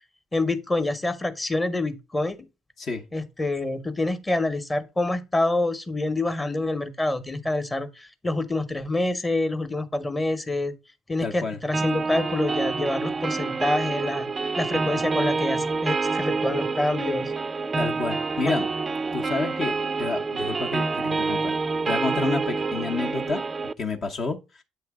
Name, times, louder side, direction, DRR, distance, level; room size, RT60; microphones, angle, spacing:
voice 1, 0.3-2.4 3.1-10.7 11.1-14.3 14.6-17.3, left 2 dB, 20° left, 1.0 m, -27 dB
voice 2, 11.2-11.6 17.8-18.7 19.1-21.6 21.9-23.4 23.8-24.6, left 3 dB, 50° left, 0.9 m, -29 dB
sound 1, 11.7-23.7, right 4 dB, 30° right, 0.4 m, -27 dB
7.9 x 3.2 x 4.7 m
hypercardioid pair, 65°, 0 cm